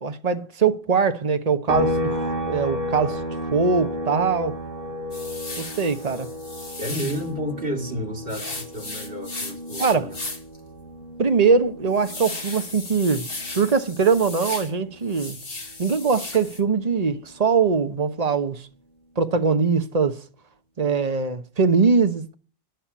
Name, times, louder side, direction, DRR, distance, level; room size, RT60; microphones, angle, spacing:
voice 1, 0.0-3.2 3.5-4.6 5.6-6.3 9.8-10.1 11.2-13.3 13.5-15.4 15.8-18.7 19.2-20.2 20.8-22.3, right 5 dB, 40° right, 1.2 m, -22 dB
sound 1, 1.7-15.2 15.6-17.8, left 1 dB, 60° right, 2.8 m, -33 dB
sound 2, 5.1-7.3 8.3-10.6 11.0-11.1 11.5-14.7 15.0-16.6, left 2 dB, 60° left, 2.5 m, -36 dB
voice 2, 6.8-10.2, equal, 85° right, 2.9 m, -31 dB
11.5 x 11.0 x 6.1 m
omnidirectional pair, 1.1 m